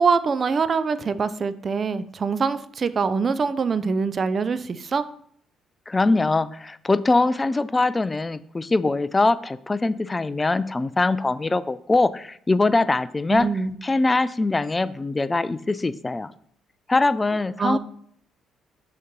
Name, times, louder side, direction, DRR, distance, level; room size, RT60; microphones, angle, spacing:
voice 1, 0.0-5.1 13.3-13.7 17.6-17.8, right 5 dB, 45° right, 13 dB, 0.4 m, -24 dB
voice 2, 5.9-13.5 13.8-16.3 16.9-17.8, left 3 dB, 20° left, 16 dB, 0.3 m, -22 dB
6.4 x 2.9 x 5.2 m, 0.65 s
supercardioid pair, 70°, 0 cm